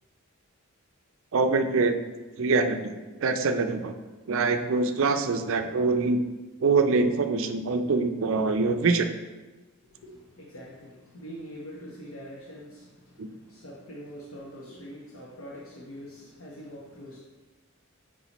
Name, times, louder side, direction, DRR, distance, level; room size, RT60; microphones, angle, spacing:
voice 1, 1.3-2.0 2.4-2.9 3.2-3.9 4.3-6.2 6.6-9.1 13.2-13.3, right 4 dB, 65° right, 7 dB, 0.5 m, -24 dB
voice 2, 9.8-17.2, equal, 70° left, -5 dB, 1.0 m, -44 dB
8.3 x 4.7 x 3.0 m, 1.2 s
head